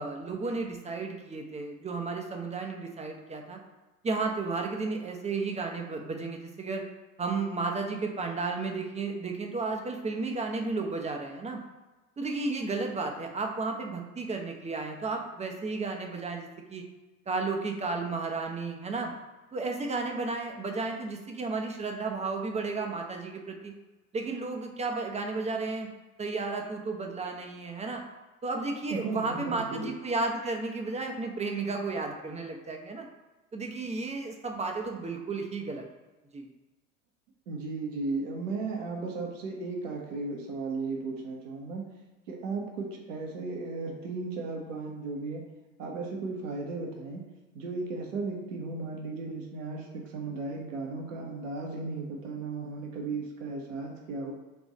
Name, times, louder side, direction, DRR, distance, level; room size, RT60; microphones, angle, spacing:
voice 1, 0.0-3.6 4.0-6.9 7.2-11.6 12.2-16.9 17.3-19.1 19.5-23.7 24.1-25.9 26.2-28.0 28.4-33.1 33.5-35.8 36.3-36.5, right 3 dB, 15° right, 2 dB, 0.7 m, -33 dB
voice 2, 28.9-29.9 37.5-41.8 42.3-45.4 45.8-47.2 47.5-54.3, right 3 dB, 70° right, 0 dB, 1.2 m, -35 dB
3.5 x 3.5 x 4.1 m, 1.2 s
figure-of-eight pair, 70°, 40 cm